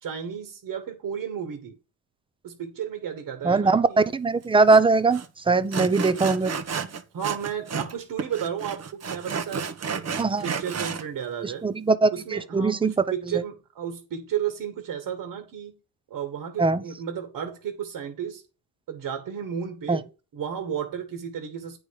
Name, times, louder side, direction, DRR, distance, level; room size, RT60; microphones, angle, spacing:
voice 1, 0.0-1.8 2.4-4.1 7.1-9.7 10.0-10.2 10.4-11.7 12.1-15.8 16.1-18.4 18.9-20.1 20.3-21.8, right 8 dB, 55° right, 1.9 m, -33 dB
voice 2, 3.4-3.9 4.1-6.5 10.2-10.5 11.4-12.9 16.6-16.8 19.9-20.0, right 3 dB, 15° right, 0.7 m, -21 dB
Sawing, 4.7-4.8 5.1-5.3 5.7-7.9 8.2-11.0, right 6 dB, 40° right, 1.2 m, -31 dB
8.9 x 5.2 x 4.9 m
supercardioid pair, 80°, 40 cm